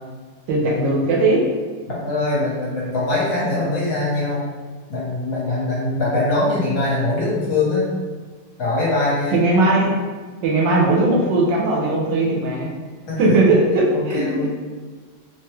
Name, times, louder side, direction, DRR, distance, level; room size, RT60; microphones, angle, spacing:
voice 1, 0.5-1.5 9.3-10.0 10.4-12.7 13.2-14.5, right 2 dB, 90° right, -2 dB, 1.3 m, -18 dB
voice 2, 1.9-4.5 4.9-7.9 8.6-9.4 13.1-13.4 13.9-14.5, left 2 dB, 55° left, -7 dB, 1.3 m, -22 dB
3.1 x 2.2 x 3.1 m, 1.5 s
omnidirectional pair, 1.9 m